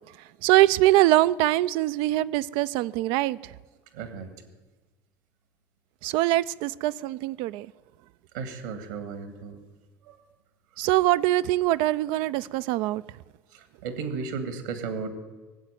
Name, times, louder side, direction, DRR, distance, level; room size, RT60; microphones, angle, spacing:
voice 1, 0.4-3.5 6.0-7.7 10.8-13.0, right 16 dB, 65° right, 14 dB, 0.4 m, -23 dB
voice 2, 3.9-4.3 8.3-9.6 10.1-10.2 13.5-15.1, right 5 dB, 80° right, 10 dB, 2.0 m, -34 dB
18.5 x 8.1 x 9.2 m, 1.2 s
hypercardioid pair, 70°, 9 cm